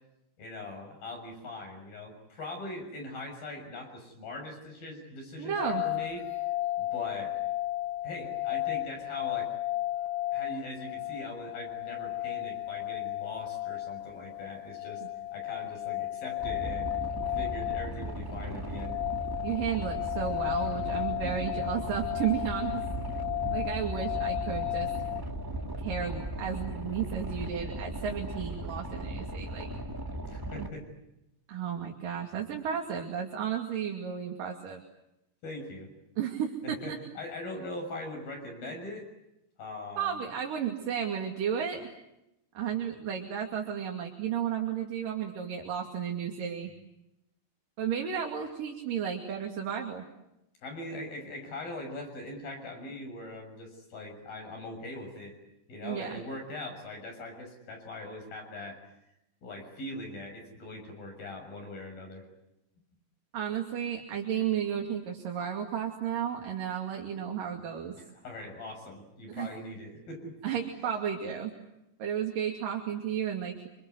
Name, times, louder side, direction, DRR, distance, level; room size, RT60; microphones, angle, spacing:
voice 1, 0.4-6.5 6.8-7.3 8.0-9.5 10.3-15.0 15.3-16.9 17.3-19.0 21.2-21.5 30.3-30.9 35.4-35.9 36.6-39.1 39.6-40.2 50.6-55.3 55.7-58.8 59.4-62.3 67.9-70.4, left 2 dB, 55° left, 3 dB, 8.4 m, -41 dB
voice 2, 5.4-5.8 15.0-15.1 19.4-22.9 23.5-24.9 25.8-29.7 30.6-30.7 31.5-34.8 36.2-37.0 40.0-41.9 42.5-46.7 47.8-50.0 55.8-56.1 63.3-67.9 69.3-69.5 70.4-71.5 72.0-73.7, right 8 dB, 55° right, 1 dB, 3.9 m, -33 dB
sound 1, 5.6-25.2, left 15 dB, 75° left, 3.1 m, -34 dB
Boat Water vehicle, 16.4-30.7, right 1 dB, 10° right, 1.3 m, -38 dB
sound 2, 18.9-29.8, right 1 dB, 15° left, 0.9 m, -45 dB
28.0 x 26.0 x 8.1 m, 0.87 s
omnidirectional pair, 5.1 m